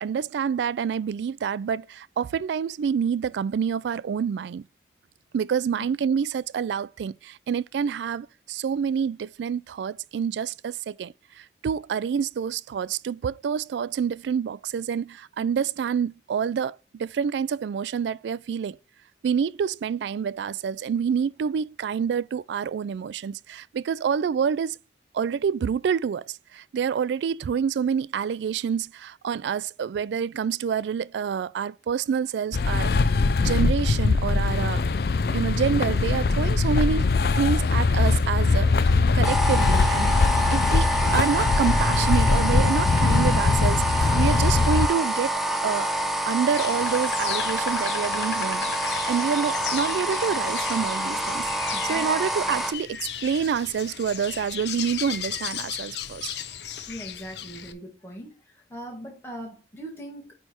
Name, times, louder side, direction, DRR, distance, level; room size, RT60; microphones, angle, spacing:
voice 1, 0.0-4.6 5.3-18.8 19.2-24.8 25.1-34.9 35.3-37.1 37.4-40.1 40.5-45.3 45.6-45.9 46.2-56.3, right 7 dB, 75° right, 0.3 m, -27 dB
sound 1, 32.5-44.9, left 3 dB, 55° left, 0.4 m, -22 dB
sound 2, 39.2-52.7, right 1 dB, ahead, 0.7 m, -27 dB
Insect, 46.5-57.7, left 8 dB, 75° left, 0.7 m, -35 dB
voice 2, 51.7-52.1 56.9-60.3, right 1 dB, 15° left, 1.6 m, -40 dB
9.1 x 3.3 x 4.3 m
head